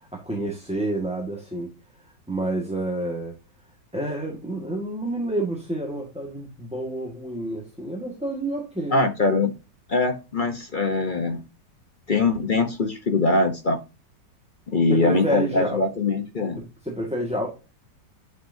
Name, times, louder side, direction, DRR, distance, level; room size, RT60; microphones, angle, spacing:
voice 1, 0.0-1.7 2.3-3.3 3.9-9.0 14.9-15.8 16.6-17.5, right 1 dB, 5° right, -1 dB, 1.4 m, -29 dB
voice 2, 8.9-9.5 9.9-11.4 12.1-13.8 14.7-16.6, left 3 dB, 45° left, 6 dB, 0.7 m, -22 dB
9.5 x 5.9 x 2.7 m, 0.29 s
omnidirectional pair, 1.9 m